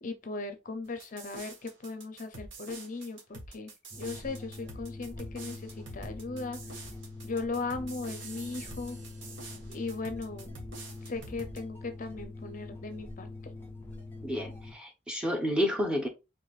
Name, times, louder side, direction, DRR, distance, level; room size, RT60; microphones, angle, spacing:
voice 1, 0.0-6.8 7.2-9.0 9.7-10.6 11.0-13.5, left 3 dB, 45° left, 0.5 m, -38 dB
sound 1, 1.0-11.6, right 3 dB, 75° right, 1.4 m, -46 dB
sound 2, 3.9-14.7, left 2 dB, 10° left, 1.4 m, -44 dB
voice 2, 14.2-16.1, equal, 5° right, 0.9 m, -30 dB
4.8 x 3.5 x 2.3 m
head